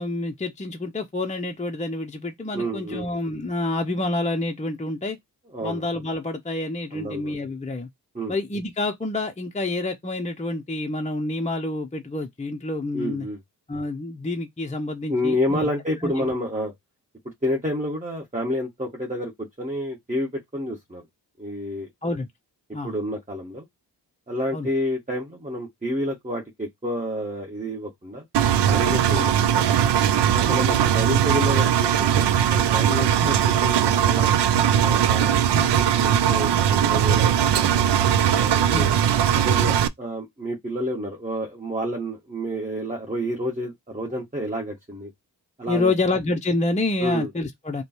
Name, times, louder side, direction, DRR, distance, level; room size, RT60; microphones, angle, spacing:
voice 1, 0.0-5.2 5.6-7.9 8.3-13.3 13.7-15.7 16.0-16.3 22.0-22.3 22.7-22.9 24.5-24.7 29.1-29.3 30.5-30.6 33.2-33.4 35.5-35.7 38.7-38.9 45.7-47.8, left 2 dB, 15° left, 0.6 m, -28 dB
voice 2, 2.5-3.1 5.5-5.8 6.9-7.3 8.1-8.3 12.9-13.4 15.1-16.7 17.4-21.0 21.4-21.9 22.8-23.6 24.3-28.2 28.7-29.7 30.3-33.4 33.6-34.3 34.8-35.3 35.6-37.9 38.4-39.0 39.4-45.1 45.6-45.9 47.0-47.3, equal, 20° right, 1.7 m, -29 dB
Engine, 28.3-39.9, right 9 dB, 75° right, 0.6 m, -20 dB
4.9 x 2.3 x 3.0 m
cardioid pair, 45°, 42 cm